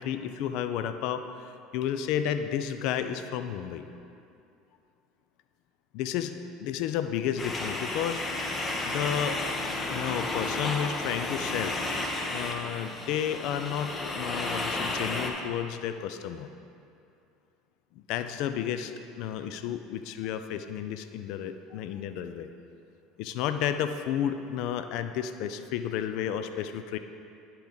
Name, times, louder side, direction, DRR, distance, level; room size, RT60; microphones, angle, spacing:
voice 1, 0.0-3.8 5.9-8.2 8.8-9.4 9.9-11.8 12.3-16.5 18.0-22.5 23.2-27.0, left 9 dB, 65° left, 9 dB, 0.4 m, -32 dB
sound 1, 7.4-15.3, left 2 dB, 25° left, 0.9 m, -32 dB
10.5 x 4.6 x 3.8 m, 2.6 s
hypercardioid pair, 80°, 0 cm